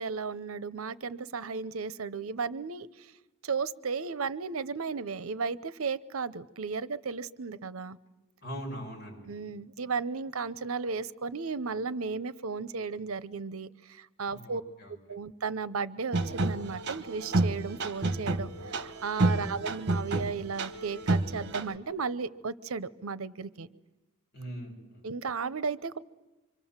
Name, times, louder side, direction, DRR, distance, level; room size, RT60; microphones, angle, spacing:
voice 1, 0.0-3.1 3.4-8.0 9.3-14.6 15.1-23.7 25.0-26.0, right 5 dB, 80° right, 16 dB, 0.7 m, -34 dB
voice 2, 8.4-9.4 14.3-14.9 19.2-19.5 24.3-25.1, equal, 50° left, -1 dB, 6.7 m, -41 dB
sound 1, 16.1-21.8, right 2 dB, 55° right, 1.2 m, -30 dB
25.5 x 25.0 x 7.3 m, 1.1 s
head